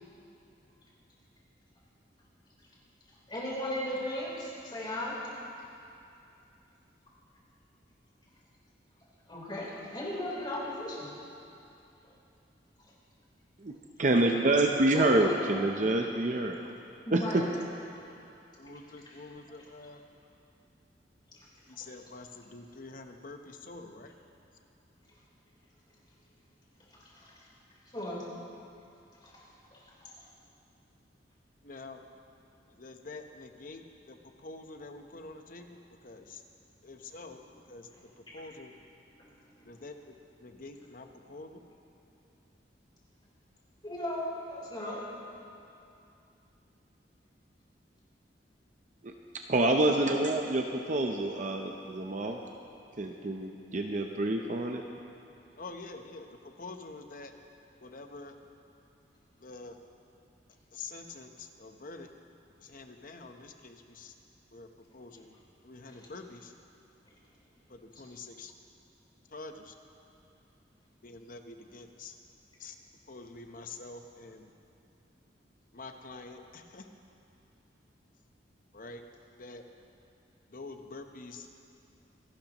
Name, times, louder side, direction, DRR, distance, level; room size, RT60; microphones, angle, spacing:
voice 1, 3.3-5.1 9.3-11.1 14.9-15.6 17.1-17.4 18.7-18.8 19.1-19.2 21.8-21.9 27.2-27.3 27.9-28.2 29.2-29.4 29.7-30.1 37.9-38.0 39.2-39.3 39.6-39.7 43.8-45.0 50.0-50.2 65.9-66.1, left 1 dB, 25° left, -5 dB, 3.8 m, -37 dB
voice 2, 13.6-16.7 17.1-17.4 49.0-52.4 53.0-54.8, right 2 dB, 45° right, 3 dB, 0.7 m, -27 dB
voice 3, 18.6-20.0 21.7-24.1 31.6-32.0 32.8-35.8 36.0-36.4 36.8-37.4 37.7-37.9 38.2-38.7 39.7-40.1 40.4-41.6 55.6-56.3 56.6-57.3 57.8-58.4 59.4-59.7 60.7-62.1 62.6-64.1 64.5-64.7 64.9-65.3 65.6-66.5 67.7-68.5 69.3-69.7 71.0-72.1 72.6-72.7 73.1-74.5 75.7-76.8 78.7-79.0 79.4-79.6 80.5-81.5, left 3 dB, 50° left, 5 dB, 0.9 m, -46 dB
26.5 x 12.0 x 3.0 m, 2.7 s
head